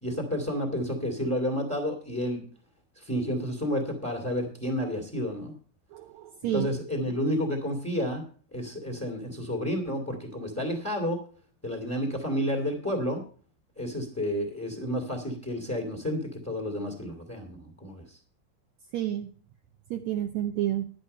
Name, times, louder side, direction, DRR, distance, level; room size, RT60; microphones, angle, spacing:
voice 1, 0.0-2.4 2.9-5.5 6.4-8.2 8.5-11.2 11.6-13.2 13.8-18.2, equal, 5° left, 4 dB, 1.5 m, -30 dB
voice 2, 5.9-6.7 18.9-19.3 19.9-20.9, right 12 dB, 75° right, 6 dB, 1.7 m, -30 dB
10.5 x 10.0 x 5.4 m, 0.42 s
omnidirectional pair, 3.8 m